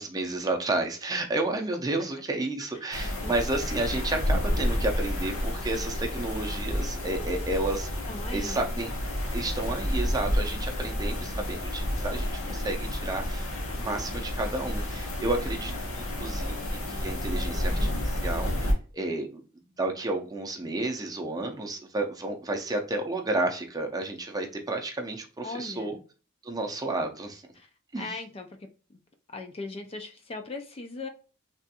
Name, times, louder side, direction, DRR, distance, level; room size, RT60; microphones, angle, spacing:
voice 1, 0.0-7.9 8.3-8.9 9.3-19.4 19.8-26.0 26.4-27.4 27.9-28.1, right 2 dB, 20° right, 3 dB, 0.6 m, -31 dB
voice 2, 2.7-3.3 8.1-8.7 17.7-18.1 25.4-26.0 27.6-27.7 27.9-29.0 29.3-31.1, left 3 dB, 30° left, 5 dB, 0.4 m, -39 dB
sound 1, 2.9-18.7, equal, 90° left, 1.0 m, -30 dB
3.4 x 2.5 x 2.7 m, 0.36 s
head